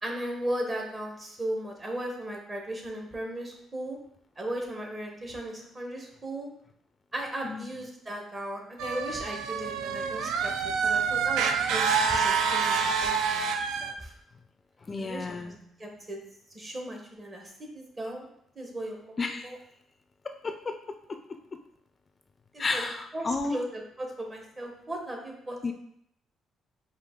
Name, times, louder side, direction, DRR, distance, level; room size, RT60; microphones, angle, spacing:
voice 1, 0.0-4.0 4.4-6.5 7.1-10.5 10.8-14.1 15.0-15.5 15.8-16.2 16.5-18.3 18.5-19.6 22.5-22.8 23.1-25.7, right 1 dB, 30° right, 1 dB, 1.1 m, -37 dB
voice 2, 7.4-7.7 14.8-15.6 19.2-19.6 20.2-21.2 21.5-21.6 22.6-23.6 25.6-25.7, left 3 dB, 35° left, 6 dB, 0.4 m, -33 dB
sound 1, 8.8-13.9, right 6 dB, 90° right, 0.3 m, -27 dB
4.9 x 2.5 x 3.7 m, 0.72 s
cardioid pair, 90°, 0 cm